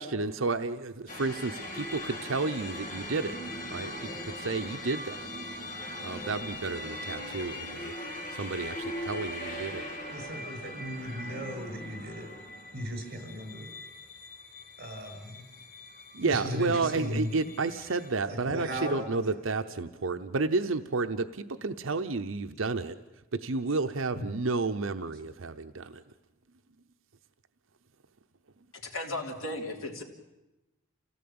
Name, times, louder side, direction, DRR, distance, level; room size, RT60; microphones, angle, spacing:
voice 1, 0.0-3.4 3.7-5.3 6.0-7.9 8.3-9.8 16.1-23.0 23.3-26.0, right 3 dB, 75° right, 8 dB, 0.8 m, -31 dB
sound 1, 1.1-18.1, left 1 dB, 40° left, 2.3 m, -40 dB
voice 2, 10.1-12.3 12.7-13.7 14.8-15.4 16.2-17.5 18.3-19.0 24.2-24.3, equal, 50° right, 4 dB, 6.8 m, -36 dB
voice 3, 28.7-30.0, left 1 dB, 90° left, 2 dB, 3.3 m, -36 dB
28.0 x 16.5 x 8.7 m, 1.0 s
head